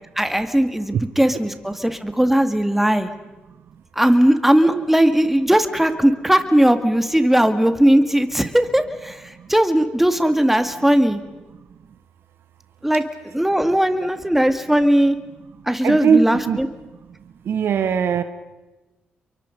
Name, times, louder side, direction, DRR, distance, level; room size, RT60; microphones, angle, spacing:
voice 1, 0.2-3.1 4.0-9.2 9.5-11.2 12.8-13.0 13.3-15.2 15.7-16.7, right 1 dB, 5° right, 8 dB, 2.1 m, -18 dB
voice 2, 15.8-16.6 17.5-18.2, right 6 dB, 70° right, 11 dB, 1.3 m, -20 dB
28.5 x 23.5 x 5.4 m, 1.1 s
supercardioid pair, 55°, 4 cm